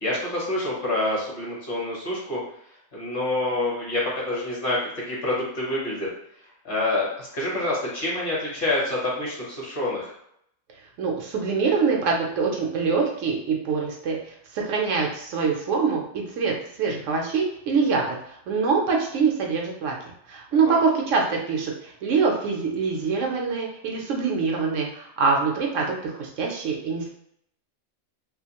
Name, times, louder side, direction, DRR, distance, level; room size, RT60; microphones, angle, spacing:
voice 1, 0.0-2.4 2.9-6.1 6.6-10.1 20.6-20.8, left 1 dB, 45° left, -5 dB, 1.0 m, -27 dB
voice 2, 11.0-14.2 14.5-18.1 18.5-20.0 20.3-27.1, right 5 dB, 70° right, 0 dB, 0.9 m, -24 dB
2.5 x 2.4 x 2.8 m, 0.72 s
omnidirectional pair, 1.4 m